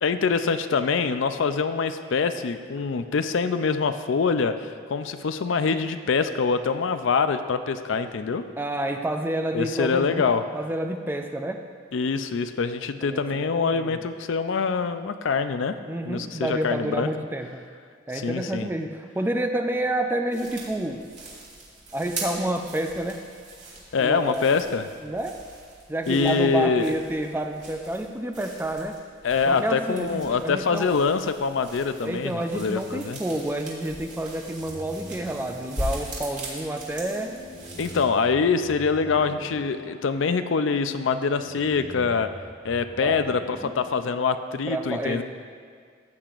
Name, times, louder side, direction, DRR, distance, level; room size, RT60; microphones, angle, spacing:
voice 1, 0.0-8.4 9.5-10.4 11.9-15.8 16.0-17.1 18.1-18.7 23.9-24.9 26.1-26.9 29.2-33.2 37.8-42.3 42.6-45.2, left 5 dB, 75° left, 10 dB, 0.4 m, -24 dB
voice 2, 8.6-10.2 10.5-11.6 13.0-14.1 15.9-17.6 18.1-21.0 21.9-23.3 24.0-24.5 25.0-25.4 25.9-29.0 29.5-30.9 32.0-37.4 43.0-43.2 43.6-43.7 44.7-45.2, right 1 dB, 10° right, 5 dB, 0.4 m, -29 dB
sound 1, 20.3-38.0, right 1 dB, 40° right, 2.4 m, -40 dB
sound 2, 34.5-44.5, left 1 dB, 20° left, 1.3 m, -44 dB
14.5 x 8.5 x 2.5 m, 2.1 s
head